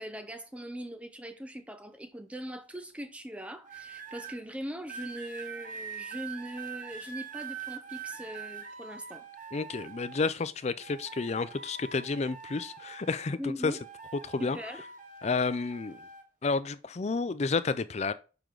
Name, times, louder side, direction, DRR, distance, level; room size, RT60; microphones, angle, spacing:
voice 1, 0.0-9.3 13.4-13.8 14.4-14.8, equal, 5° right, 0.7 m, -41 dB
sound 1, 3.6-4.4 4.9-10.4 10.8-13.4 13.7-16.2 17.0-17.3, right 7 dB, 45° right, 1.1 m, -44 dB
voice 2, 9.5-13.8 14.2-14.6 15.2-16.0 16.4-18.1, left 4 dB, 35° left, 0.4 m, -31 dB
6.8 x 3.8 x 4.7 m
head